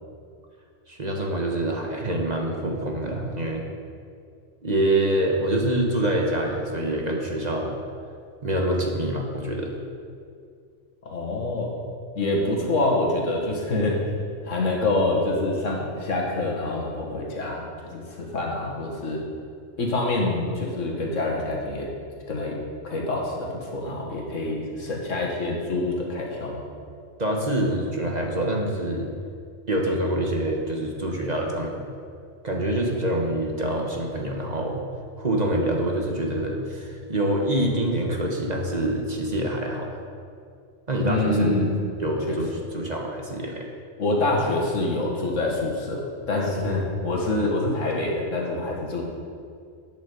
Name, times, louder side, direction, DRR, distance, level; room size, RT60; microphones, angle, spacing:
voice 1, 0.9-3.6 4.6-7.7 8.4-9.7 23.9-24.0 27.2-29.1 29.7-31.8 32.4-34.8 35.2-40.0 40.9-41.7 42.0-43.7, right 1 dB, 35° right, 0 dB, 1.2 m, -26 dB
voice 2, 11.1-11.7 12.2-14.1 14.4-19.2 19.8-21.9 22.3-22.6 22.8-26.6 41.0-41.7 42.3-42.4 44.0-49.0, left 2 dB, 75° left, -1 dB, 2.0 m, -26 dB
8.6 x 7.7 x 6.7 m, 2.3 s
omnidirectional pair, 1.3 m